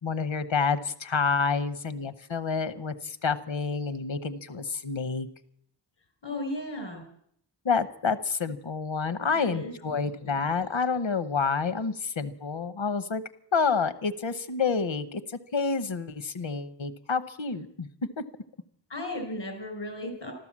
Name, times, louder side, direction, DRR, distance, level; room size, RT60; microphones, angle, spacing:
voice 1, 0.0-5.3 7.6-13.2 13.5-17.9 18.2-18.3, left 5 dB, 85° left, 12 dB, 1.0 m, -28 dB
voice 2, 6.2-7.0 9.3-9.7 10.2-10.3 18.9-20.3, left 1 dB, 65° left, 5 dB, 5.0 m, -35 dB
13.5 x 13.0 x 7.4 m, 0.68 s
wide cardioid pair, 45°, 45 cm